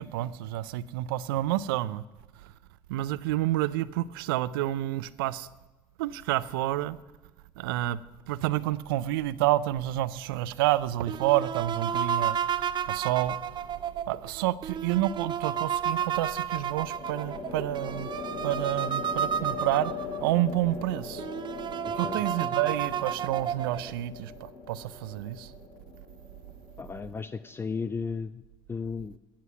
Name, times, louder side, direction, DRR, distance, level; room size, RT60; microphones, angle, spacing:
voice 1, 0.0-2.0 2.9-5.5 6.0-7.0 7.6-8.0 8.3-12.4 12.9-13.4 14.1-18.1 18.4-21.2 21.9-25.5, right 14 dB, 80° right, 0.5 m, -29 dB
sound 1, 11.1-20.3 20.8-20.9 21.2-23.9, right 8 dB, 40° right, 0.7 m, -32 dB
sound 2, 13.4-14.0 16.5-27.9, left 4 dB, 55° left, 1.9 m, -41 dB
voice 2, 26.8-28.4 28.7-29.2, left 5 dB, 20° left, 0.4 m, -34 dB
17.0 x 7.5 x 5.8 m
hypercardioid pair, 70°, 12 cm